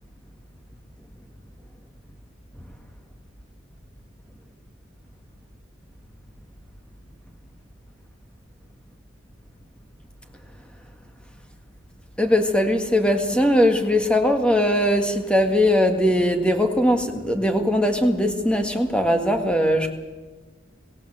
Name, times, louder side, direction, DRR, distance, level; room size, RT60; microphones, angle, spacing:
voice 1, 12.2-19.9, left 1 dB, 5° left, 5 dB, 1.8 m, -20 dB
25.0 x 16.0 x 7.7 m, 1.3 s
head